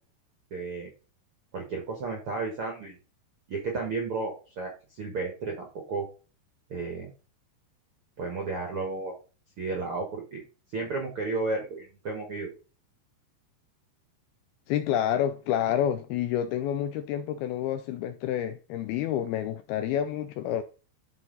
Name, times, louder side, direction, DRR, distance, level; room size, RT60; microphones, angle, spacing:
voice 1, 0.5-0.9 1.5-3.0 3.5-6.1 6.7-7.1 8.2-9.1 9.6-10.4 10.7-12.5, right 3 dB, 65° right, 1.3 m, -33 dB
voice 2, 14.7-20.6, left 10 dB, 85° left, 2.2 m, -28 dB
12.5 x 4.5 x 4.0 m
omnidirectional pair, 5.0 m